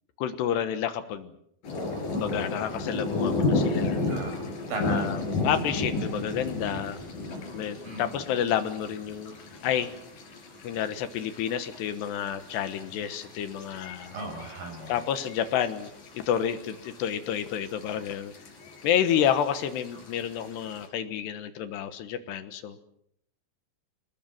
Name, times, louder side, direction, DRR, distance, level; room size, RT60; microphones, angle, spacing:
voice 1, 0.2-1.3 2.1-4.0 4.8-7.0 7.5-9.4 9.6-9.9 10.6-14.2 14.9-15.9 16.2-18.3 18.8-22.8, left 9 dB, 75° left, 11 dB, 3.3 m, -29 dB
sound 1, 1.6-20.9, left 2 dB, 50° left, 5.7 m, -34 dB
voice 2, 3.9-4.3 4.7-5.1 7.8-8.2 14.1-15.0, right 2 dB, 60° right, 4 dB, 7.8 m, -36 dB
26.0 x 19.5 x 7.6 m, 0.72 s
omnidirectional pair, 5.1 m